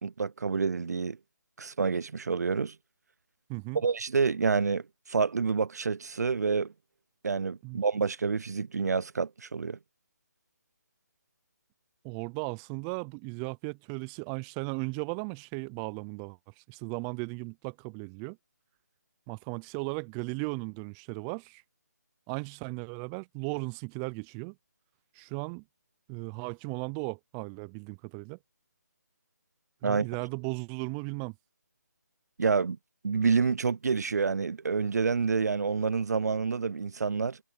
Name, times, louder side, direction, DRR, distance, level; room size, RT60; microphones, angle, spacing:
voice 1, 0.0-1.2 1.6-2.8 3.7-6.7 7.2-9.8 29.8-30.1 32.4-32.8 33.0-37.4, right 5 dB, 65° right, 0.5 m, -28 dB
voice 2, 3.5-3.8 7.6-7.8 12.0-18.4 19.3-21.6 22.3-24.5 25.2-25.6 26.1-28.4 29.8-31.3, right 33 dB, 15° right, 0.5 m, -36 dB
figure-of-eight pair, 155°, 9 cm